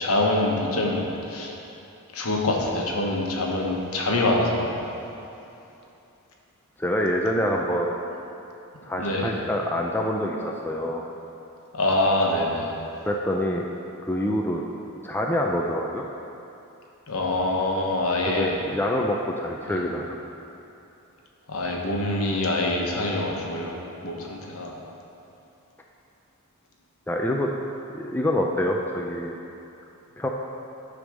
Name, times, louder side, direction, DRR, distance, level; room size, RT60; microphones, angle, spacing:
voice 1, 0.0-1.5 2.1-4.8 9.0-9.3 11.7-12.7 17.1-18.6 19.7-19.8 21.5-23.8 24.0-24.7, left 2 dB, 70° left, -1 dB, 1.1 m, -25 dB
voice 2, 6.8-8.0 8.8-11.0 13.1-13.7 14.0-14.6 15.0-16.0 18.3-20.2 27.1-27.5 27.9-29.3 30.2-30.3, left 1 dB, 10° left, -1 dB, 0.3 m, -26 dB
9.8 x 3.5 x 6.3 m, 2.8 s
head